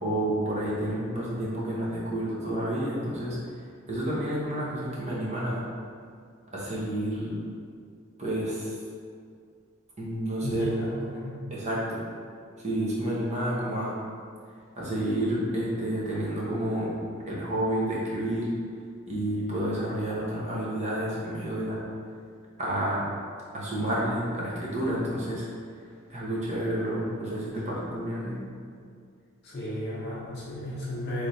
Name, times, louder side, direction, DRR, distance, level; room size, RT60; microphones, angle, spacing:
voice 1, 0.0-3.6 3.9-5.7 6.5-7.4 8.2-8.8 10.0-10.8 11.5-12.0 12.6-14.0 14.8-18.5 19.1-21.8 22.6-23.0 23.5-25.5 26.1-28.4, right 1 dB, 30° right, -6 dB, 0.8 m, -30 dB
voice 2, 10.4-11.4 29.4-31.3, left 1 dB, 50° left, -7 dB, 0.8 m, -34 dB
3.2 x 3.1 x 4.0 m, 2.2 s
head